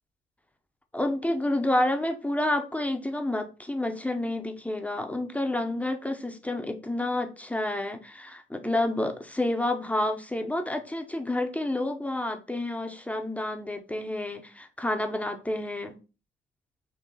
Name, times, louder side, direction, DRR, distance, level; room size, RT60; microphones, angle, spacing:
voice 1, 0.9-15.9, left 1 dB, 5° left, 0.7 m, -29 dB
3.8 x 2.7 x 4.0 m
cardioid pair, 90°, 20 cm